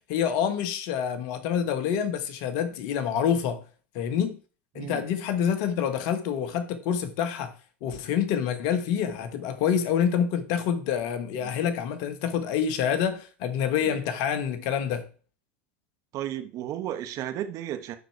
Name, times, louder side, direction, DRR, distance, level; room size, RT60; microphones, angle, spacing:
voice 1, 0.1-3.6 3.9-4.4 4.7-7.5 7.8-15.1, left 8 dB, 60° left, 1.3 m, -27 dB
voice 2, 16.1-18.0, right 12 dB, 50° right, 1.3 m, -34 dB
11.5 x 4.4 x 4.7 m
hypercardioid pair, 90°, 7 cm